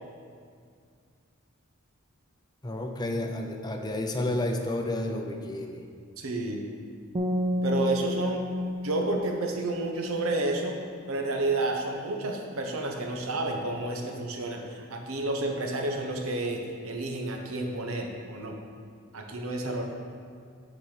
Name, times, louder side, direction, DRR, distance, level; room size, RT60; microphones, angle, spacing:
voice 1, 2.6-5.8 19.6-19.8, left 1 dB, 20° left, 3 dB, 0.5 m, -31 dB
voice 2, 6.2-6.7 7.6-8.5 8.8-10.8 11.1-18.6 19.1-19.8, right 2 dB, 85° right, 2 dB, 0.9 m, -30 dB
sound 1, 7.1-10.3, left 1 dB, 30° right, 0.5 m, -31 dB
8.9 x 4.1 x 4.9 m, 2.2 s
head